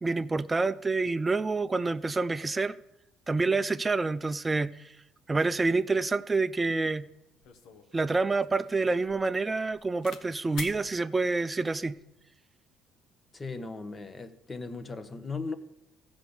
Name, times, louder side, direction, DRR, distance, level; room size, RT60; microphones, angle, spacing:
voice 1, 0.0-2.7 3.3-4.7 5.3-7.1 7.9-12.0, right 3 dB, 20° right, 0.4 m, -27 dB
sound 1, 7.4-10.2 10.5-10.8 11.7-12.0, left 5 dB, 70° left, 1.2 m, -46 dB
voice 2, 13.3-15.6, left 4 dB, 25° left, 1.0 m, -37 dB
14.5 x 5.1 x 7.0 m
supercardioid pair, 75°, 0 cm